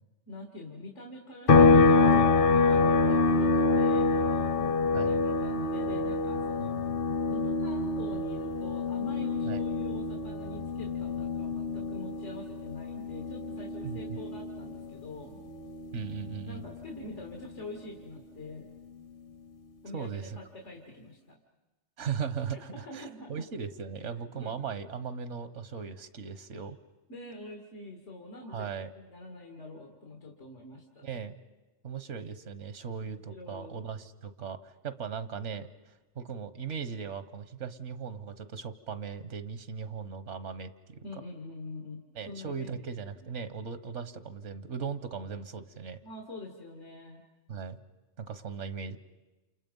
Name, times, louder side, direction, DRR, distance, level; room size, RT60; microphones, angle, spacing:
voice 1, 0.3-4.5 4.9-6.8 7.3-15.4 16.5-18.7 19.8-21.4 22.5-23.5 24.3-24.7 27.1-31.1 33.0-33.8 41.0-42.9 43.2-43.3 46.0-47.2, left 2 dB, 85° left, 0 dB, 2.6 m, -45 dB
sound 1, 1.5-15.0 15.4-17.6, left 3 dB, 50° left, 1.1 m, -26 dB
voice 2, 6.6-7.0 9.4-9.6 13.8-14.2 15.9-16.6 19.9-20.4 22.0-26.8 28.5-28.9 31.0-31.4 31.8-41.0 42.1-46.0 47.5-47.8 48.2-49.0, right 6 dB, 85° right, 12 dB, 1.4 m, -38 dB
29.0 x 28.5 x 5.4 m, 1.1 s
omnidirectional pair, 1.2 m